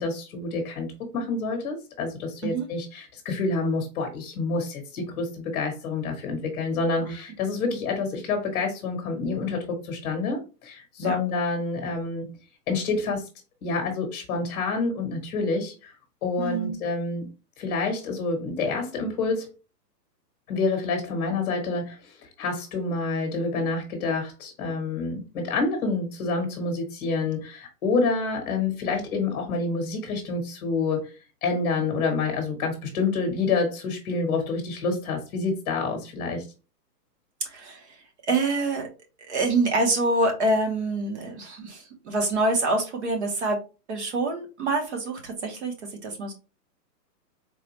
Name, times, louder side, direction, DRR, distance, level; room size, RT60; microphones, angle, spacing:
voice 1, 0.0-12.2 12.7-13.2 13.6-15.9 16.2-17.3 17.6-19.5 20.5-22.0 22.4-31.1 31.4-36.4, left 3 dB, 25° left, 3 dB, 1.2 m, -28 dB
voice 2, 16.4-16.7 37.4-38.0 38.3-38.9 39.3-43.6 43.9-46.3, right 2 dB, 45° right, 3 dB, 1.2 m, -26 dB
4.0 x 2.4 x 3.0 m, 0.31 s
hypercardioid pair, 170°, 49 cm